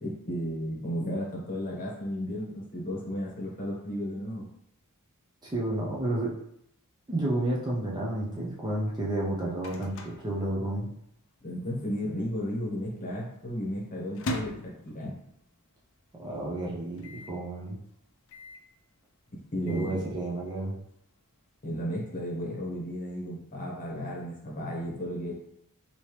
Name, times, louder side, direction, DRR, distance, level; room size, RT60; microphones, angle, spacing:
voice 1, 0.0-4.5 11.4-15.2 19.5-20.0 21.6-25.3, equal, 35° left, -3 dB, 1.0 m, -34 dB
voice 2, 5.4-6.3 7.1-10.9 16.2-17.8 19.7-20.8, right 1 dB, 20° right, -4 dB, 0.5 m, -31 dB
Microwave oven, 9.0-11.2 11.5-11.6 11.8-12.3 12.8-15.5 16.0-16.1 16.2-16.3 17.0-17.4 18.3-18.7 19.4-20.0, left 1 dB, 60° left, 0.5 m, -40 dB
3.3 x 2.8 x 3.0 m, 0.74 s
head